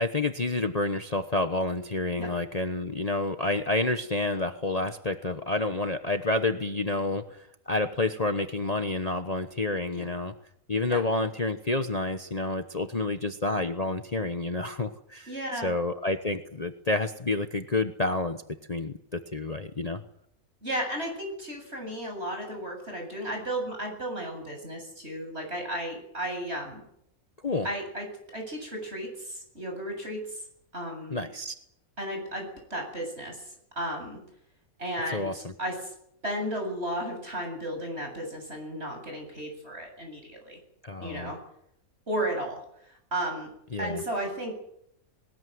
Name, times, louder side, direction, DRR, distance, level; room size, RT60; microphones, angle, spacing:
voice 1, 0.0-10.3 10.7-18.4 18.7-20.0 27.4-27.7 31.1-31.5 35.1-35.3 40.8-41.3 43.7-44.0, left 2 dB, 30° left, 7 dB, 1.1 m, -29 dB
voice 2, 15.3-15.7 20.6-26.8 27.6-28.1 28.3-30.4 30.7-31.3 32.0-34.2 34.8-35.9 36.2-40.6 41.0-41.4 42.1-42.6 43.1-43.5 43.8-44.5, right 1 dB, 45° right, 3 dB, 8.2 m, -34 dB
21.0 x 20.0 x 9.4 m, 0.75 s
omnidirectional pair, 1.5 m